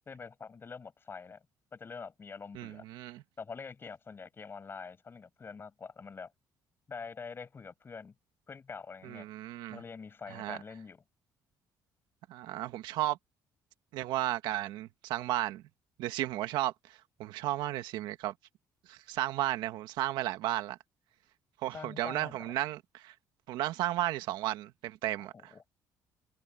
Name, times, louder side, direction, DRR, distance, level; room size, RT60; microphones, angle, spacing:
voice 1, 0.1-1.4 1.7-2.8 3.4-6.3 6.9-8.1 8.5-9.3 9.7-11.0 21.7-22.4 25.2-25.7, left 5 dB, 30° left, 6.8 m, -45 dB
voice 2, 2.5-3.2 9.0-9.8 10.3-10.6 12.3-13.2 13.9-15.6 16.0-18.3 18.9-20.8 21.6-23.1 23.5-25.5, right 15 dB, 90° right, 1.7 m, -34 dB
cardioid pair, 115°, 8 cm